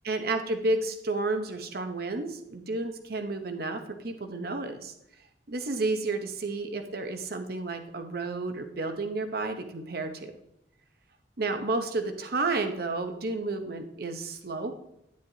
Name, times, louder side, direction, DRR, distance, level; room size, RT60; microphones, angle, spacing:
voice 1, 0.0-4.9 5.5-10.3 11.4-14.7, right 3 dB, 55° right, 7 dB, 0.9 m, -31 dB
9.6 x 9.5 x 2.8 m, 0.81 s
head